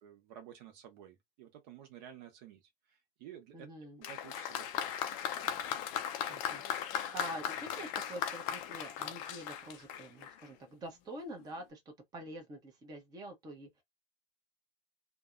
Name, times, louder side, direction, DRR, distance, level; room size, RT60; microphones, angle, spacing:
voice 1, 0.0-3.7 4.0-4.9 5.4-5.7, right 10 dB, 45° right, 0.9 m, -53 dB
voice 2, 3.5-4.0 6.3-13.8, right 1 dB, 15° right, 0.8 m, -46 dB
Applause, 4.0-10.5 11.4-11.5, left 9 dB, 35° left, 0.4 m, -38 dB
2.6 x 2.2 x 2.5 m
hypercardioid pair, 110°, 30 cm